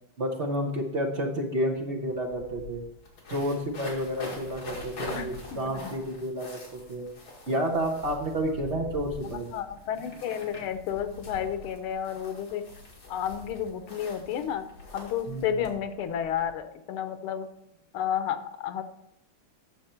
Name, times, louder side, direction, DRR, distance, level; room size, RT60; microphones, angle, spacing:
voice 1, 0.2-2.8 3.3-7.1 7.5-9.5 15.3-15.6, equal, 40° right, 0 dB, 1.1 m, -30 dB
sound 1, 1.7-1.8 2.0-16.5, left 2 dB, 65° left, 2.8 m, -44 dB
voice 2, 5.1-5.9 9.5-12.6 13.1-14.6 14.9-17.5 17.9-18.8, left 9 dB, 90° left, 9 dB, 1.7 m, -31 dB
9.3 x 6.7 x 4.4 m, 0.77 s
omnidirectional pair, 2.3 m